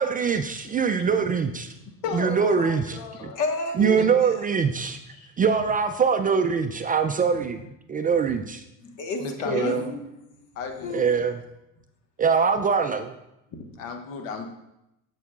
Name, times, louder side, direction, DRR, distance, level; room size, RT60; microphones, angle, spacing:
voice 1, 0.0-1.7 2.1-3.3 3.8-5.0 5.4-7.6 7.9-8.6 9.5-9.8 10.9-11.4 12.2-13.1, right 6 dB, 25° right, 7 dB, 0.4 m, -23 dB
voice 2, 0.8-1.2 1.6-2.1 3.3-4.4 7.6-7.7 8.8-10.5 10.8-11.1 13.5-13.7, left 3 dB, 50° left, 4 dB, 1.4 m, -32 dB
voice 3, 2.0-3.4 4.0-4.1 5.1-5.3 9.2-9.9 10.6-11.1 13.8-14.5, left 5 dB, 80° left, 5 dB, 1.0 m, -34 dB
12.5 x 4.8 x 2.4 m, 0.87 s
hypercardioid pair, 80°, 39 cm